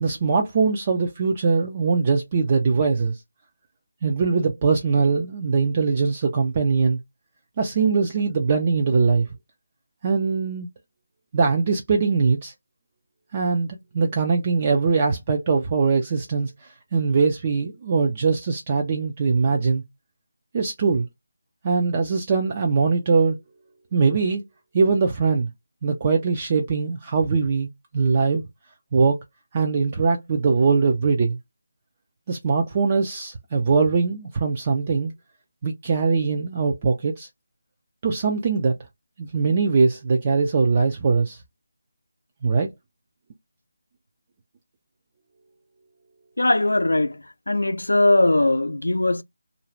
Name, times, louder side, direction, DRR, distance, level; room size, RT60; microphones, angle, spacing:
voice 1, 0.0-3.2 4.0-7.0 7.6-9.3 10.0-10.7 11.3-12.5 13.3-19.8 20.5-21.1 21.6-23.4 23.9-24.4 24.7-25.5 25.8-28.4 28.9-29.2 29.5-31.4 32.3-35.1 35.6-37.3 38.0-38.8 39.2-41.4 42.4-42.7, right 4 dB, 30° right, 0.4 m, -21 dB
voice 2, 46.4-49.2, left 2 dB, 80° left, 0.4 m, -20 dB
2.5 x 2.3 x 3.0 m
figure-of-eight pair, 160°, 0 cm